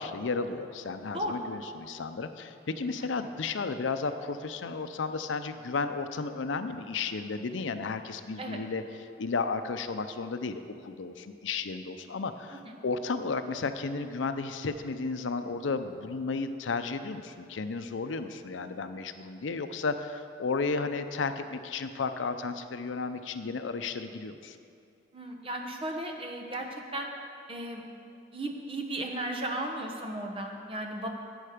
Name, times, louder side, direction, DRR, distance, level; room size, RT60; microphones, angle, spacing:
voice 1, 0.0-8.8 9.2-24.6, left 4 dB, 90° left, 9 dB, 0.6 m, -33 dB
voice 2, 25.1-27.1 27.5-27.8 28.3-31.1, right 1 dB, 30° right, 2 dB, 1.0 m, -35 dB
11.0 x 8.7 x 5.0 m, 2.5 s
head